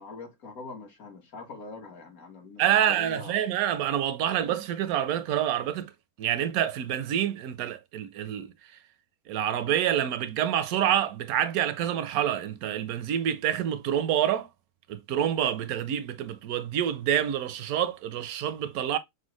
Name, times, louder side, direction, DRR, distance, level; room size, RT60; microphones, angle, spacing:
voice 1, 0.0-3.4, left 3 dB, 70° left, 1.8 m, -43 dB
voice 2, 2.6-5.9 6.2-8.5 9.3-14.5 14.9-19.0, right 10 dB, 80° right, 1.1 m, -27 dB
6.1 x 2.1 x 3.0 m
omnidirectional pair, 1.5 m